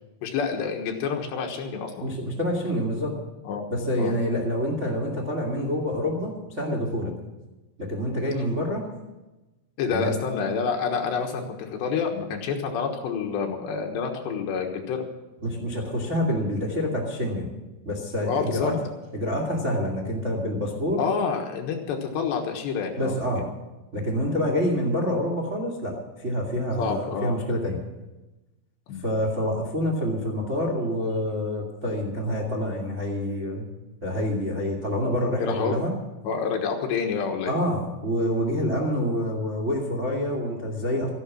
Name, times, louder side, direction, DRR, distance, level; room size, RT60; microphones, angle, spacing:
voice 1, 0.2-2.1 3.4-3.7 4.0-4.2 9.8-15.1 18.3-18.8 21.0-23.4 26.8-27.4 28.9-29.1 35.4-35.8 36.2-37.5, left 6 dB, 70° left, 3 dB, 3.2 m, -28 dB
voice 2, 2.0-3.1 3.7-7.1 7.8-8.8 9.9-10.1 15.4-17.5 17.8-18.7 19.1-21.0 23.0-23.4 23.9-27.8 29.0-33.6 34.0-35.9 37.4-41.1, equal, 40° right, 0 dB, 0.9 m, -27 dB
14.0 x 11.5 x 7.4 m, 1.1 s
omnidirectional pair, 5.8 m